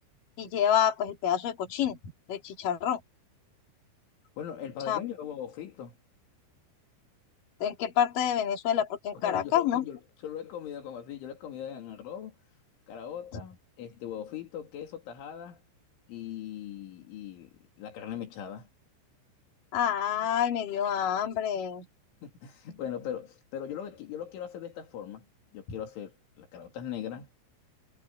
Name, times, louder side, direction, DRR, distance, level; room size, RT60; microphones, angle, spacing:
voice 1, 0.4-2.0 2.3-3.0 4.9-5.0 7.6-9.8 19.7-21.9, left 9 dB, 50° left, 4.4 m, -27 dB
voice 2, 4.4-5.9 9.1-12.4 12.9-15.6 16.1-18.7 22.2-25.3 25.5-27.3, left 9 dB, 80° left, 5.4 m, -40 dB
omnidirectional pair, 5.4 m